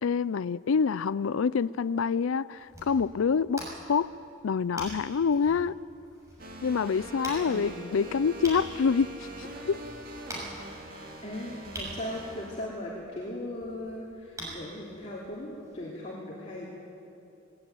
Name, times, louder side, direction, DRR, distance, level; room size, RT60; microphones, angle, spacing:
voice 1, 0.0-3.6 3.9-4.1 4.4-5.8 6.6-9.1 9.4-9.8, left 6 dB, 80° left, 18 dB, 0.4 m, -26 dB
sound 1, 2.6-15.8, right 1 dB, 15° right, 6.7 m, -46 dB
sound 2, 6.4-12.7, right 1 dB, 45° right, 2.4 m, -43 dB
voice 2, 7.4-7.8 10.8-16.7, left 1 dB, 35° left, -5 dB, 3.0 m, -38 dB
19.5 x 19.0 x 9.2 m, 2.7 s
head